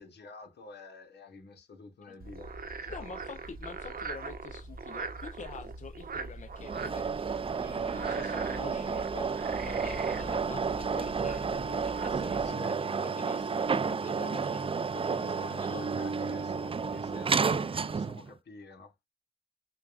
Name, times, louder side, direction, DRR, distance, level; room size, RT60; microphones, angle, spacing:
voice 1, 0.0-3.1 12.4-12.8 15.2-18.9, left 4 dB, 80° left, 1.0 m, -49 dB
Frog, 2.2-12.5, right 4 dB, 60° right, 0.9 m, -41 dB
voice 2, 2.9-16.0, left 5 dB, 45° left, 0.6 m, -46 dB
sound 1, 6.6-18.3, right 5 dB, 35° right, 0.4 m, -31 dB
6.1 x 2.3 x 2.4 m
cardioid pair, 45°, 17 cm